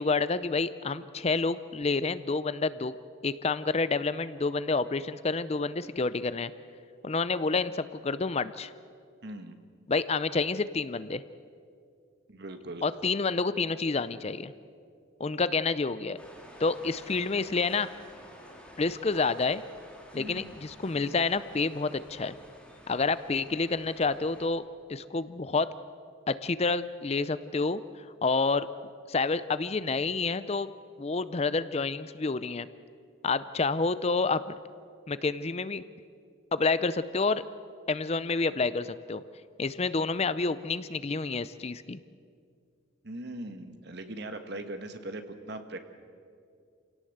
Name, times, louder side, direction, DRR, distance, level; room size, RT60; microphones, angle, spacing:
voice 1, 0.0-2.9 3.2-6.5 7.0-8.7 9.9-11.2 12.8-14.5 15.2-16.2 16.6-17.9 18.8-19.6 20.1-22.4 22.9-24.6 24.9-25.7 26.3-27.8 28.2-28.7 29.1-30.7 31.0-32.7 33.2-34.6 35.1-35.8 36.5-37.4 37.9-39.2 39.6-42.0, left 4 dB, 30° left, 14 dB, 0.5 m, -28 dB
voice 2, 9.2-9.6 12.3-12.8 20.2-20.5 43.0-45.8, right 1 dB, 55° right, 7 dB, 1.7 m, -40 dB
sound 1, 16.2-24.5, equal, 5° left, 3.5 m, -51 dB
27.5 x 17.5 x 7.9 m, 2.3 s
head